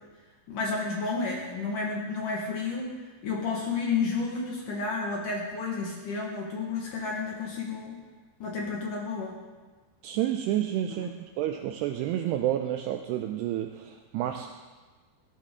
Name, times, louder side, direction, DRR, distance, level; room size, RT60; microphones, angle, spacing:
voice 1, 0.5-3.0 3.2-8.0 8.4-9.4 10.9-11.0, left 4 dB, 60° left, -2 dB, 2.5 m, -31 dB
voice 2, 10.0-11.1 11.4-14.5, right 12 dB, 90° right, 5 dB, 2.4 m, -29 dB
17.0 x 13.0 x 3.7 m, 1.3 s
omnidirectional pair, 5.4 m